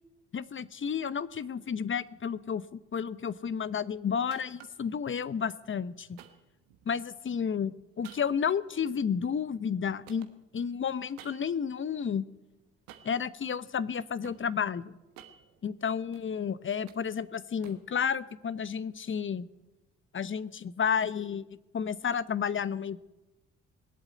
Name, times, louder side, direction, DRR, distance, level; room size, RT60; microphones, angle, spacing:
voice 1, 0.3-6.2 6.9-7.7 8.0-10.3 10.5-12.2 13.0-15.0 15.6-19.5 20.1-21.5 21.7-23.0, left 7 dB, 35° left, 17 dB, 0.8 m, -31 dB
sound 1, 4.3-4.9 6.2-7.1 8.0-9.8 10.1-11.7 12.9-13.3 13.8-14.5 15.0-16.3 16.6-18.0, right 11 dB, 85° right, 1.3 m, -53 dB
21.0 x 8.1 x 8.5 m, 1.0 s
hypercardioid pair, 50°, 33 cm